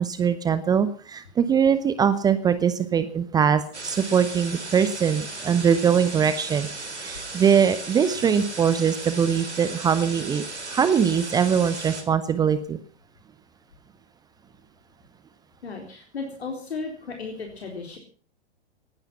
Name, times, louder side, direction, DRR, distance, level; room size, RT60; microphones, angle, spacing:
voice 1, 0.0-6.7 7.0-12.8, right 7 dB, 10° right, 13 dB, 0.7 m, -22 dB
sound 1, 3.7-12.0, right 3 dB, 85° right, 3.9 m, -36 dB
voice 2, 15.6-18.0, left 4 dB, 70° left, 2 dB, 4.1 m, -35 dB
19.0 x 11.5 x 5.6 m, 0.42 s
figure-of-eight pair, 115°, 33 cm